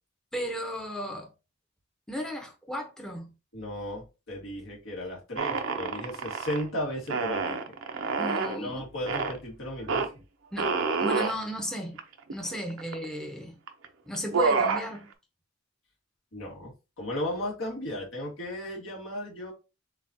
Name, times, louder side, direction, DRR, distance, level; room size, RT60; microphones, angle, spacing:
voice 1, 0.3-1.3 2.1-3.3 8.2-8.8 10.5-12.0 12.3-13.5 14.1-15.1, equal, 5° left, 0.8 m, -35 dB
voice 2, 3.5-7.7 8.4-10.2 12.4-12.5 16.3-19.5, left 1 dB, 70° left, 1.8 m, -35 dB
sound 1, 5.4-6.6 7.1-8.6 9.1-9.4 9.9-10.1 10.6-11.3 12.0-12.1 12.3-13.0 13.7-13.8 14.1-14.9, right 4 dB, 75° right, 0.7 m, -28 dB
7.1 x 2.4 x 2.7 m
head